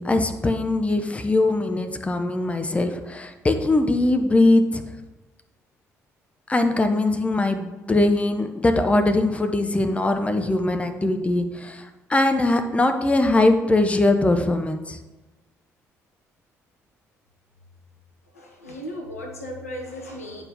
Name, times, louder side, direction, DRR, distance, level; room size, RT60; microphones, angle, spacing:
voice 1, 0.0-4.8 6.5-15.0, left 2 dB, 15° left, 7 dB, 0.7 m, -21 dB
voice 2, 18.3-20.4, equal, 85° left, 2 dB, 0.8 m, -36 dB
8.7 x 4.5 x 3.7 m, 1.1 s
figure-of-eight pair, 45°, 8 cm